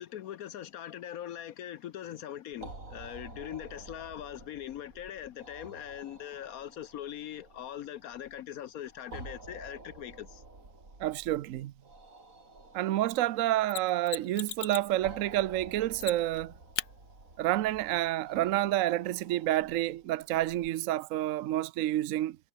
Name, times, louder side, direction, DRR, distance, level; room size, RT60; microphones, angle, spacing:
voice 1, 0.0-10.4, left 11 dB, 65° left, 1.0 m, -41 dB
sound 1, 2.5-20.7, right 2 dB, 45° right, 5.1 m, -51 dB
voice 2, 11.0-11.7 12.7-16.5 17.4-22.4, right 14 dB, 70° right, 0.8 m, -29 dB
Mechanisms, 13.7-14.9 16.0-16.4 16.8-16.9 19.7-19.8, left 12 dB, 85° left, 1.5 m, -37 dB
omnidirectional pair, 1.9 m